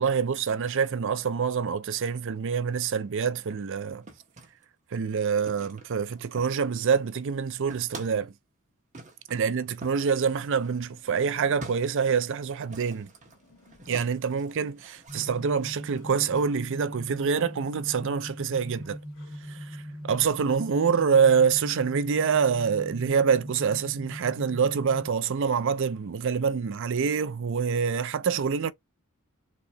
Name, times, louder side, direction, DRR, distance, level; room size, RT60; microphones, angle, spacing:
voice 1, 0.0-4.0 4.9-8.3 9.3-13.1 13.9-19.0 19.5-28.7, right 6 dB, 60° right, 0.4 m, -26 dB
sound 1, 3.3-4.7 5.5-6.8 7.0-8.3 8.9-16.6, right 2 dB, 35° right, 1.2 m, -48 dB
Bird, 10.4-22.5, left 4 dB, 80° left, 1.9 m, -59 dB
sound 2, 15.1-25.1, equal, 80° right, 1.4 m, -40 dB
4.2 x 2.8 x 3.3 m
head